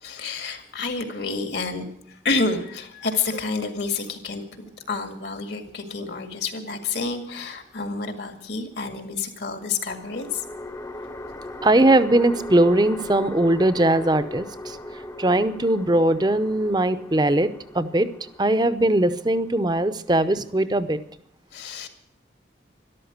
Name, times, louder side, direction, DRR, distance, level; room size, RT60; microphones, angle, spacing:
voice 1, 0.0-10.4 21.5-21.9, left 4 dB, 70° left, 6 dB, 2.1 m, -29 dB
sound 1, 6.7-7.6 9.8-21.2, left 1 dB, 15° left, 0.7 m, -39 dB
voice 2, 11.6-14.8 15.2-17.5 17.7-18.1 18.4-21.0, right 1 dB, 25° right, 12 dB, 0.7 m, -20 dB
13.0 x 12.0 x 8.0 m, 0.69 s
head